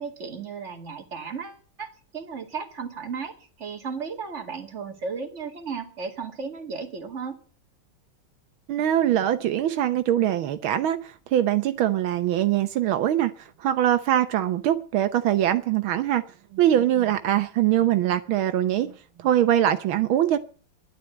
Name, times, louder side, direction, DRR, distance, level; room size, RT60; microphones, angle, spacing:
voice 1, 0.0-7.4, right 5 dB, 35° right, 2.6 m, -35 dB
voice 2, 8.7-16.2 16.5-20.4, right 11 dB, 80° right, 1.7 m, -23 dB
12.5 x 11.5 x 7.9 m
omnidirectional pair, 2.2 m